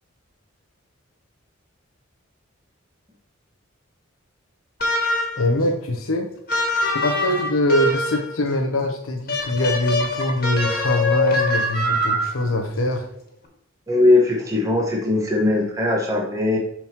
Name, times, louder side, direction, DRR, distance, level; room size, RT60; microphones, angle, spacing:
sound 1, 4.8-5.5 6.5-8.3 9.3-12.5, left 1 dB, 45° left, 1.7 m, -23 dB
voice 1, 5.3-6.3 7.0-13.1, left 1 dB, 85° left, 3 dB, 0.9 m, -23 dB
voice 2, 13.9-16.6, left 2 dB, 15° right, -1 dB, 1.2 m, -19 dB
7.2 x 6.1 x 2.9 m, 0.76 s
head